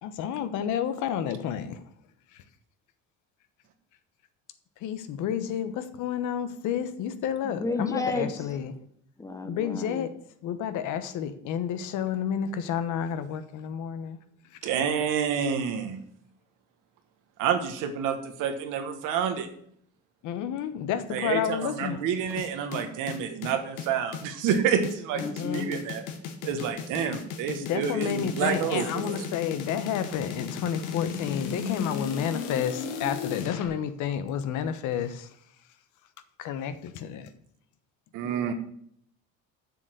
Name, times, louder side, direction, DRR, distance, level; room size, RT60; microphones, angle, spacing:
voice 1, 0.0-1.8 2.3-2.4 4.8-8.7 9.4-10.1 10.4-14.2 20.2-22.0 22.3-22.4 25.2-25.7 27.6-35.3 36.4-37.3, left 9 dB, 70° left, 1.1 m, -30 dB
voice 2, 7.4-8.5 9.2-10.1 25.2-25.8 38.2-38.5, left 2 dB, 10° left, 0.9 m, -32 dB
voice 3, 14.6-16.0 17.4-19.5 21.1-26.0 26.4-29.2 38.1-38.5, right 7 dB, 80° right, 1.6 m, -28 dB
sound 1, 22.4-33.7, left 6 dB, 90° left, 1.5 m, -35 dB
7.2 x 6.8 x 7.9 m
cardioid pair, 145°, 31 cm